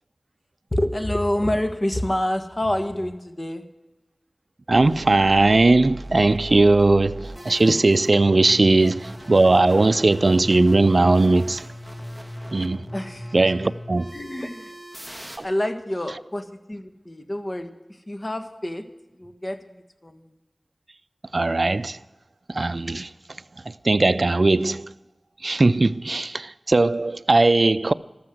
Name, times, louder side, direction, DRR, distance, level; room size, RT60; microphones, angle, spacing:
voice 1, 0.7-3.6 12.9-13.7 14.1-14.7 15.4-17.7 18.1-18.8 19.2-20.3 27.5-27.6, left 1 dB, 35° left, 1.6 m, -27 dB
sound 1, 4.7-15.4, equal, 5° right, 2.2 m, -38 dB
voice 2, 4.7-11.6 12.5-12.8 13.3-14.1 15.4-15.5 21.3-22.0 22.5-23.1 23.8-24.9 25.4-27.9, right 2 dB, 60° right, 0.5 m, -19 dB
13.5 x 13.0 x 7.9 m
wide cardioid pair, 60°, 0 cm